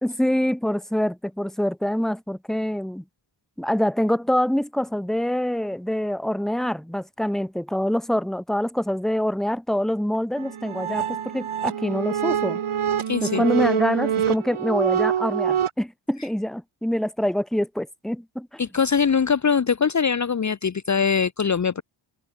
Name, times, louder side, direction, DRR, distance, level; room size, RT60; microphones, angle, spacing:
voice 1, 0.0-3.0 3.6-12.6 13.2-18.6, equal, ahead, 1.7 m, -25 dB
sound 1, 10.4-15.7, right 9 dB, 90° right, 2.9 m, -25 dB
voice 2, 13.1-13.4 18.6-21.8, left 6 dB, 35° left, 1.1 m, -22 dB
wide cardioid pair, 180°, 49 cm